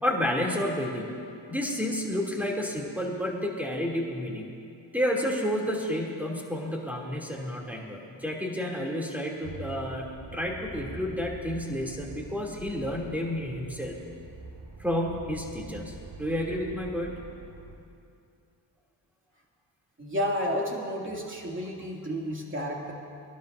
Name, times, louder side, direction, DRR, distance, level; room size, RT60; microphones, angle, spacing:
voice 1, 0.0-1.1 1.5-4.4 4.9-13.9 14.8-17.1, equal, 5° right, -2 dB, 2.8 m, -30 dB
sound 1, 9.4-17.8, right 3 dB, 45° right, 1.7 m, -45 dB
voice 2, 20.0-22.9, equal, 25° right, -2 dB, 2.5 m, -31 dB
20.5 x 12.0 x 2.7 m, 2.5 s
supercardioid pair, 50°, 45 cm